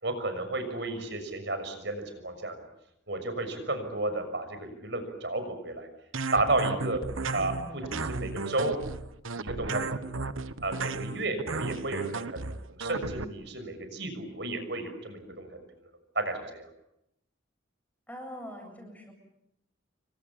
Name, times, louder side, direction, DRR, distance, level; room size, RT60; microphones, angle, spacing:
voice 1, 0.0-2.6 3.1-5.9 6.3-7.0 7.3-8.8 9.4-10.3 10.6-12.4 12.8-15.5 16.1-16.7, right 2 dB, 55° right, 8 dB, 6.3 m, -32 dB
sound 1, 6.1-13.2, right 3 dB, 85° right, 1.3 m, -34 dB
voice 2, 7.3-8.1 18.1-19.1, equal, 10° left, 3 dB, 7.8 m, -44 dB
28.5 x 25.0 x 7.3 m, 0.81 s
head